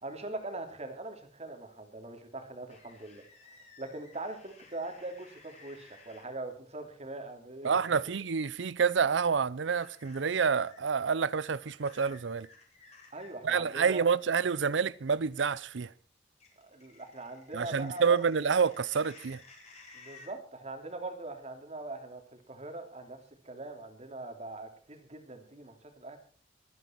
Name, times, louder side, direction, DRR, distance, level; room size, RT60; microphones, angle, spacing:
voice 1, 0.0-3.2 3.8-8.0 13.1-14.0 16.6-18.2 19.9-23.2 23.4-26.2, right 2 dB, 35° right, 3.0 m, -42 dB
sound 1, 2.7-6.3 8.3-8.5 9.8-10.8 11.4-13.3 16.4-20.3, left 4 dB, 35° left, 5.0 m, -56 dB
voice 2, 7.6-12.5 13.4-15.9 17.5-19.4, right 6 dB, 80° right, 0.6 m, -28 dB
24.5 x 9.4 x 4.5 m
head